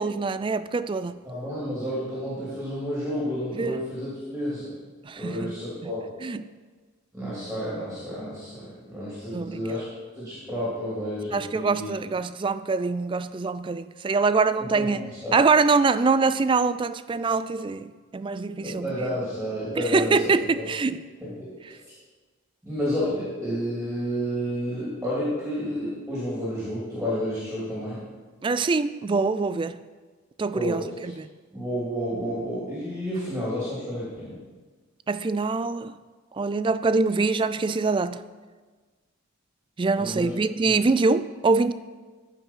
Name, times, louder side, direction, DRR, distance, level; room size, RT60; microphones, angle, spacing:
voice 1, 0.0-1.2 3.6-3.8 5.1-5.6 6.2-6.4 9.3-9.6 11.3-15.0 15.3-18.9 19.8-21.0 28.4-29.8 30.4-31.3 35.1-35.9 36.3-38.2 39.8-41.7, right 4 dB, 25° right, 0.3 m, -24 dB
voice 2, 1.2-4.7 5.1-6.0 7.1-9.9 10.1-11.9 14.6-14.9 15.2-15.4 18.6-20.7 21.2-21.5 21.8-21.9 22.6-28.0 30.5-31.1 31.5-34.4 40.0-40.3 40.6-40.7, equal, 5° right, 3.2 m, -31 dB
14.5 x 5.6 x 5.6 m
head